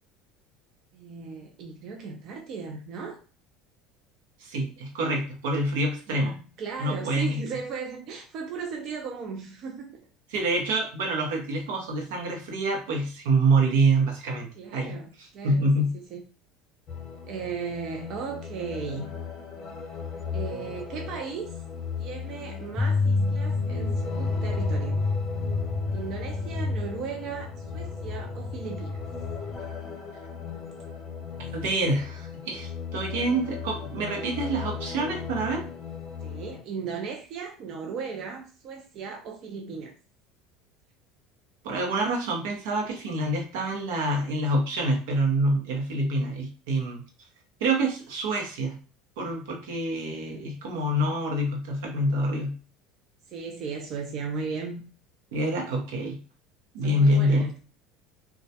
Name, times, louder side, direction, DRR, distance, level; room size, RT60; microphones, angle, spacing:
voice 1, 0.9-3.2 6.1-6.3 6.6-9.9 14.5-16.2 17.3-19.1 20.3-21.6 22.0-25.0 25.9-29.0 36.2-39.9 50.1-50.5 53.3-54.8 56.8-57.6, right 5 dB, 50° right, 2 dB, 0.5 m, -36 dB
voice 2, 4.4-6.3 6.8-7.4 10.3-15.9 31.5-35.6 41.6-47.0 47.6-48.8 49.2-52.5 55.3-56.2 56.7-57.5, right 1 dB, 90° right, 1 dB, 0.7 m, -26 dB
sound 1, 16.9-36.6, left 6 dB, 40° left, 0.7 m, -37 dB
sound 2, 22.7-29.6, left 3 dB, 15° left, 0.3 m, -29 dB
2.2 x 2.1 x 2.7 m, 0.37 s
supercardioid pair, 120°, 0 cm